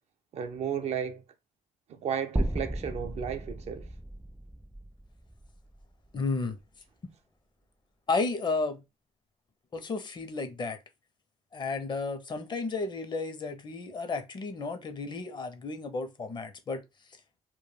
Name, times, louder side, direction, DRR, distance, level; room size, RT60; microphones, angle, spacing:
voice 1, 0.3-1.2 1.9-3.9, right 8 dB, 60° right, 0.4 m, -33 dB
sound 1, 2.4-6.6, right 1 dB, 5° right, 0.3 m, -35 dB
voice 2, 6.1-6.6 8.1-8.8 9.7-10.8 11.5-16.8, left 3 dB, 40° left, 0.6 m, -32 dB
2.2 x 2.1 x 3.1 m
cardioid pair, 90°, 12 cm